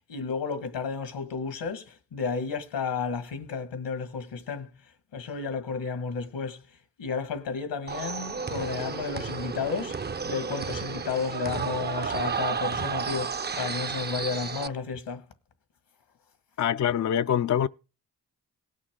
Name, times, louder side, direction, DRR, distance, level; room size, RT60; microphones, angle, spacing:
voice 1, 0.0-4.7 5.1-6.6 7.0-15.2, left 5 dB, 75° left, 1.8 m, -32 dB
sound 1, 7.9-14.7, right 5 dB, 25° right, 0.5 m, -32 dB
voice 2, 16.6-17.7, left 9 dB, 40° left, 0.5 m, -24 dB
18.5 x 6.4 x 3.7 m
supercardioid pair, 40°, 43 cm